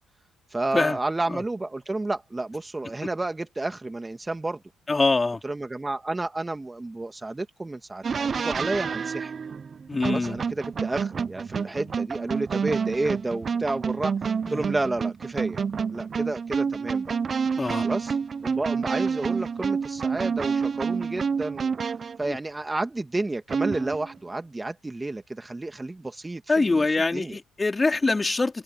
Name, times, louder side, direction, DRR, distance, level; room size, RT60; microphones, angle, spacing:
voice 1, 0.5-4.6 5.4-9.3 10.0-15.6 15.9-17.1 17.8-18.2 18.4-21.7 22.2-26.9 27.1-27.4, right 2 dB, 20° right, 2.5 m, -31 dB
voice 2, 4.9-5.4 9.9-10.4 14.5-14.7 17.6-17.8 22.3-22.4 26.5-28.6, left 3 dB, 25° left, 3.9 m, -24 dB
sound 1, 8.0-22.2 23.5-24.1, right 6 dB, 45° right, 0.8 m, -28 dB
hypercardioid pair, 50°, 0 cm